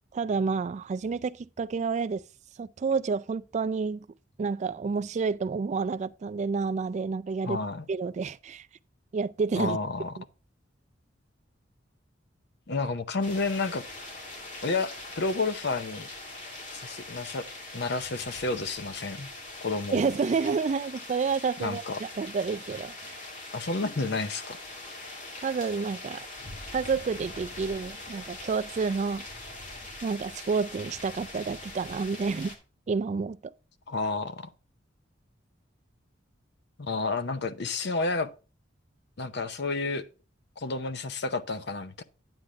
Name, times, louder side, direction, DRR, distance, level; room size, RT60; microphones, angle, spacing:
voice 1, 0.1-2.2 2.6-4.1 4.4-7.6 7.9-8.7 9.1-9.8 10.2-10.3 19.9-23.2 25.4-26.3 26.7-29.2 30.0-32.5 32.9-33.5, right 5 dB, 40° right, 0.3 m, -29 dB
voice 2, 7.4-7.9 9.5-10.1 12.7-13.8 14.6-16.1 16.7-17.5 17.7-19.3 19.6-20.1 21.6-22.0 23.5-24.6 33.9-34.5 36.8-38.3 39.2-40.1 40.6-42.0, left 3 dB, 65° left, 0.7 m, -30 dB
sound 1, 13.2-32.6, left 2 dB, 40° left, 2.3 m, -42 dB
9.9 x 8.9 x 2.4 m
head